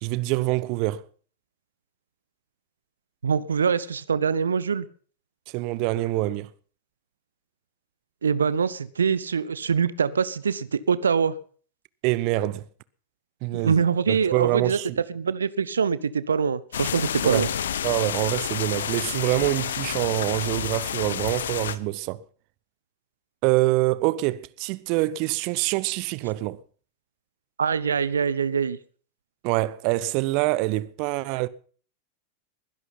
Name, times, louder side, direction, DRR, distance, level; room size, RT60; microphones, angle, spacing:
voice 1, 0.0-1.0 5.5-6.5 12.0-12.6 13.4-13.8 14.1-15.0 17.2-17.5 17.8-22.2 23.4-26.6 29.4-31.5, right 18 dB, 45° right, 0.8 m, -25 dB
voice 2, 3.2-4.9 8.2-11.4 13.5-14.8 15.1-17.5 27.6-28.8, right 6 dB, 70° right, 0.9 m, -24 dB
sound 1, 16.7-21.8, left 9 dB, 65° left, 0.9 m, -29 dB
21.0 x 11.0 x 5.8 m
figure-of-eight pair, 90°, 0 cm